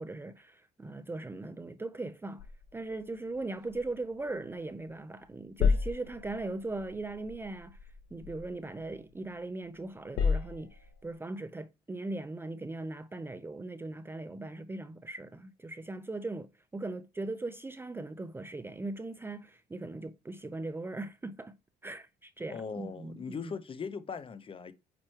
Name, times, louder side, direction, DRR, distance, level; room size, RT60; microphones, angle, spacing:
voice 1, 0.0-2.4 2.7-7.8 8.1-21.6 21.8-23.5, right 2 dB, 15° right, 0.4 m, -39 dB
sound 1, 2.4-5.0 5.2-9.5 9.8-11.1, left 5 dB, 75° left, 1.0 m, -34 dB
voice 2, 22.5-24.7, left 5 dB, 30° left, 0.7 m, -39 dB
8.7 x 3.0 x 4.4 m
cardioid pair, 110°, 17 cm